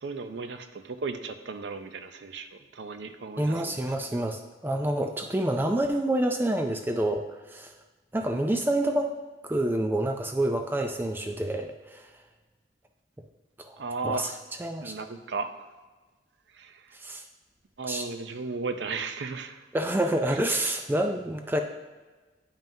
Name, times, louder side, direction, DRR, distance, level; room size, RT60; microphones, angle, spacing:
voice 1, 0.0-4.2 13.8-14.4 14.8-15.5 16.5-17.0 17.8-19.7 20.3-20.7, right 4 dB, 70° right, 9 dB, 0.5 m, -36 dB
voice 2, 3.4-7.7 8.1-9.2 9.4-12.1 13.6-13.8 14.0-14.3 14.6-15.0 16.9-17.2 17.9-18.1 19.7-21.6, right 1 dB, 10° right, 5 dB, 0.3 m, -28 dB
8.8 x 5.5 x 2.7 m, 1.3 s
head